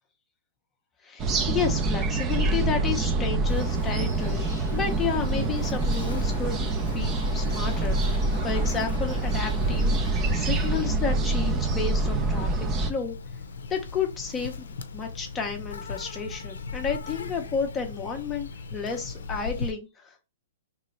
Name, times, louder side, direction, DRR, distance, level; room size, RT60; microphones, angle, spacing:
voice 1, 1.0-12.5 12.8-13.2 13.7-14.7 14.9-20.3, left 6 dB, 20° left, 2 dB, 0.6 m, -32 dB
sound 1, 1.2-12.9, right 2 dB, 25° right, 0.5 m, -26 dB
Insect, 3.5-19.7, left 4 dB, 85° left, 0.6 m, -39 dB
3.0 x 3.0 x 4.2 m, 0.28 s
hypercardioid pair, 140°, 0 cm